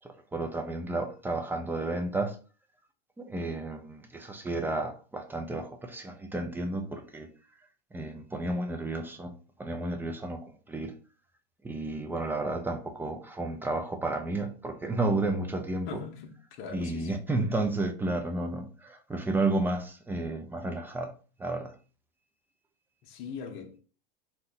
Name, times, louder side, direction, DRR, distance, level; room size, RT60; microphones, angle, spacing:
voice 1, 0.0-2.4 3.2-7.3 7.9-9.3 9.6-10.9 11.6-15.9 16.7-21.1 21.4-21.7, right 2 dB, 5° right, 0.4 m, -32 dB
voice 2, 15.9-17.1 23.0-23.8, left 6 dB, 45° left, 0.7 m, -41 dB
2.8 x 2.1 x 4.0 m
hypercardioid pair, 110°, 29 cm